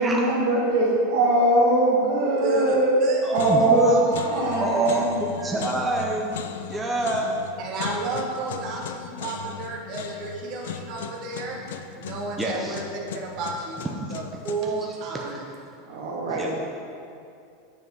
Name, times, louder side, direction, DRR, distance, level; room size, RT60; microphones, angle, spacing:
voice 1, 0.0-2.9 3.3-3.9 4.2-5.2 15.9-16.5, right 1 dB, 75° right, -3 dB, 1.5 m, -21 dB
voice 2, 2.4-3.2 3.9-4.8 5.4-5.6 7.6-11.6 11.9-12.8 13.1-15.5, right 3 dB, 40° right, -2 dB, 1.0 m, -32 dB
sound 1, 2.7-3.0 3.3-14.8, left 8 dB, 90° left, 0.4 m, -38 dB
voice 3, 3.2-4.1 4.6-6.4 6.7-7.3 12.4-12.8 14.0-14.4 15.1-15.2 16.3-16.5, right 2 dB, 10° right, -2 dB, 0.5 m, -26 dB
9.3 x 4.2 x 3.5 m, 2.5 s
supercardioid pair, 160°, 0 cm